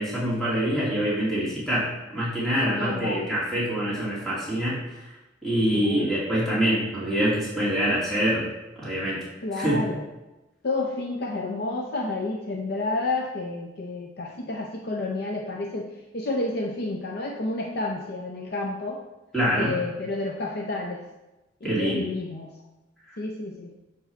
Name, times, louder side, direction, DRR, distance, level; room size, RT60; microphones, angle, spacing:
voice 1, 0.0-4.8 5.4-8.4 8.8-9.2 9.6-9.8 19.3-19.7 21.6-22.0, equal, 5° left, -8 dB, 2.2 m, -25 dB
voice 2, 2.6-3.3 5.7-6.1 9.4-10.0 10.6-19.0 19.5-21.0 21.6-22.5 23.2-23.7, left 2 dB, 55° left, 0 dB, 0.6 m, -30 dB
7.0 x 4.7 x 4.4 m, 1.0 s
head